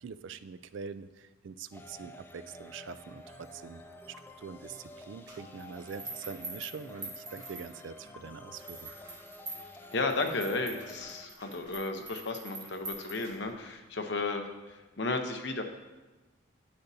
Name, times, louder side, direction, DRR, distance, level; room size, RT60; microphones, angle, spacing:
voice 1, 0.0-3.8 4.4-8.9, right 6 dB, 65° right, 13 dB, 0.3 m, -44 dB
sound 1, 1.7-11.3, left 1 dB, 10° left, 0.3 m, -50 dB
sound 2, 5.3-8.1 8.5-13.7, right 2 dB, 20° right, 2.0 m, -45 dB
voice 2, 9.9-15.6, left 3 dB, 60° left, 5 dB, 0.8 m, -33 dB
10.0 x 8.3 x 2.7 m, 1.2 s
head